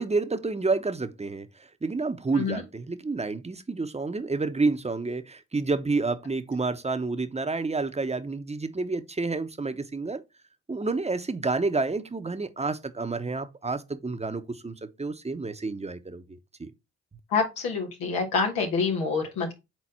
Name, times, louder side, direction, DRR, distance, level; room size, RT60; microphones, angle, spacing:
voice 1, 0.0-10.2 10.7-16.7, right 3 dB, 15° right, 1.0 m, -29 dB
voice 2, 17.3-19.5, left 4 dB, 80° left, 1.5 m, -27 dB
4.6 x 4.0 x 5.5 m
hypercardioid pair, 45°, 36 cm